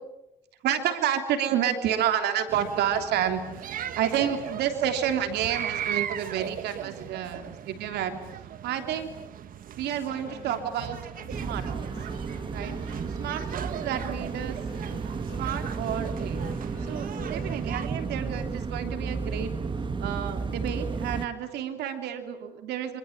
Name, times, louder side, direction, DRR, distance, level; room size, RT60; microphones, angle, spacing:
voice 1, 0.6-8.2 8.6-9.1 9.8-11.0 11.4-12.0 12.5-12.7 13.2-14.6 15.4-19.5 20.0-23.0, right 9 dB, 80° right, 7 dB, 3.2 m, -30 dB
sound 1, 2.5-17.9, right 9 dB, 55° right, 1.6 m, -38 dB
sound 2, 10.2-17.6, left 7 dB, 65° left, 4.2 m, -48 dB
sound 3, 11.3-21.3, right 5 dB, 30° right, 1.7 m, -33 dB
26.0 x 26.0 x 7.4 m, 0.91 s
cardioid pair, 110°, 17 cm